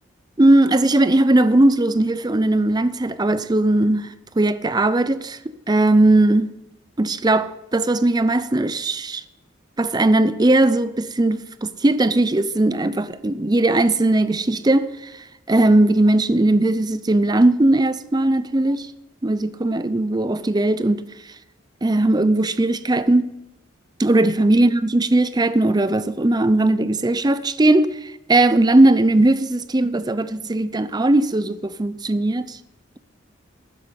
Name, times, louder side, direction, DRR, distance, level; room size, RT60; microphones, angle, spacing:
voice 1, 0.4-4.1 4.4-5.4 5.7-6.5 7.0-9.2 9.8-14.9 15.5-18.9 19.2-21.0 21.8-23.3 24.0-32.6, right 2 dB, 20° right, 0.6 m, -18 dB
12.5 x 10.0 x 5.3 m
head